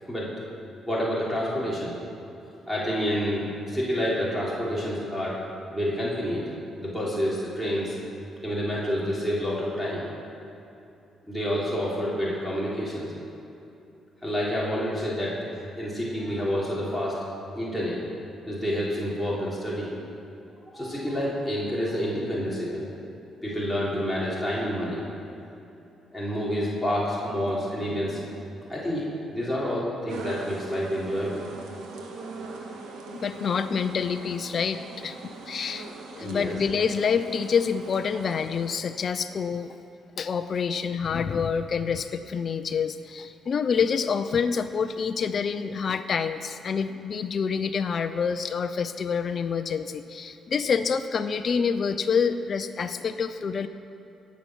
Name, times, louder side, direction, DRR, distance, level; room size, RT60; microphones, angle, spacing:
voice 1, 0.1-1.9 2.7-5.4 5.7-6.5 6.8-8.0 8.4-10.1 11.3-13.1 14.2-15.4 15.8-17.2 17.5-19.9 20.6-22.8 23.4-25.0 26.1-28.4 28.7-31.5 36.2-36.5, equal, ahead, -7 dB, 3.2 m, -28 dB
sound 1, 30.1-38.7, right 3 dB, 85° right, 1.7 m, -41 dB
voice 2, 33.2-35.2 35.5-39.8 40.2-53.7, left 6 dB, 50° left, 9 dB, 0.5 m, -27 dB
18.0 x 7.1 x 6.2 m, 2.8 s
cardioid pair, 90°, 0 cm